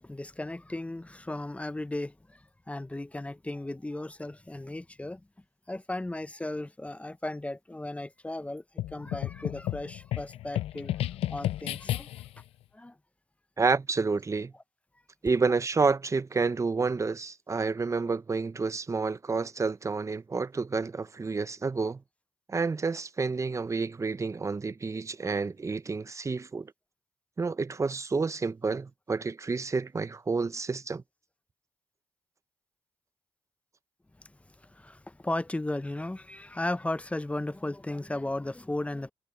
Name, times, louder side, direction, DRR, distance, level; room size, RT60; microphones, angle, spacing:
voice 1, 0.0-5.2 5.7-8.6 8.9-12.3 12.7-12.9 34.2-34.3 34.6-39.1, left 1 dB, 15° left, 0.7 m, -36 dB
sound 1, 8.8-12.4, left 13 dB, 85° left, 0.4 m, -33 dB
voice 2, 13.6-14.5 15.2-22.0 22.5-26.7 27.4-31.0, right 4 dB, 30° right, 0.8 m, -29 dB
cardioid pair, 60°, 10 cm